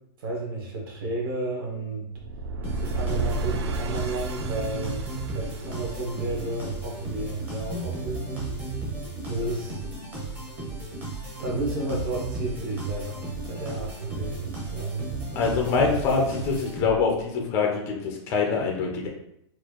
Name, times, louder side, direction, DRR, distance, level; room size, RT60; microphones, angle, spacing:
voice 1, 0.2-2.1 2.8-5.1 5.3-8.7 9.3-9.8 11.4-13.2 13.5-15.0, right 2 dB, 50° right, -2 dB, 1.3 m, -32 dB
sound 1, 2.1-7.2, right 2 dB, 65° right, 0.4 m, -32 dB
sound 2, 2.6-17.2, right 3 dB, 10° right, 0.7 m, -35 dB
voice 2, 15.4-19.1, left 5 dB, 15° left, 0 dB, 0.4 m, -24 dB
4.3 x 2.4 x 2.9 m, 0.74 s
supercardioid pair, 175°, 15 cm